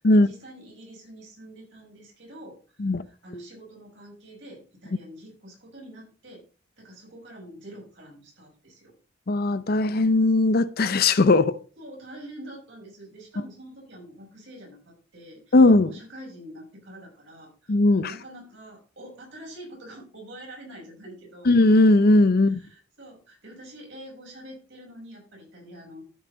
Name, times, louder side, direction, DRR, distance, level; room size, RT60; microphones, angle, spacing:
voice 1, 0.1-6.4 6.8-8.9 11.8-21.5 22.4-26.0, right 1 dB, 65° right, 5.6 m, -45 dB
voice 2, 9.3-11.6 15.5-15.9 17.7-18.1 21.5-22.6, left 2 dB, 50° left, 0.6 m, -18 dB
13.5 x 5.7 x 3.9 m
head